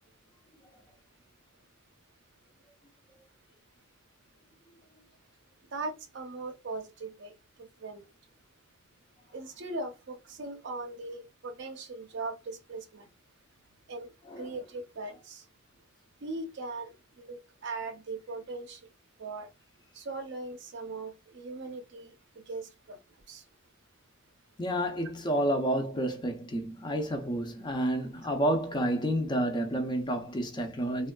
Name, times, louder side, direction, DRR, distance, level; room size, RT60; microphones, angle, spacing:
voice 1, 5.7-8.1 9.3-13.1 13.9-15.5 16.2-18.9 19.2-19.5 19.9-23.5, right 3 dB, 55° right, 0.6 m, -40 dB
voice 2, 24.6-31.1, right 1 dB, 20° left, 0.4 m, -30 dB
3.3 x 2.3 x 2.2 m
head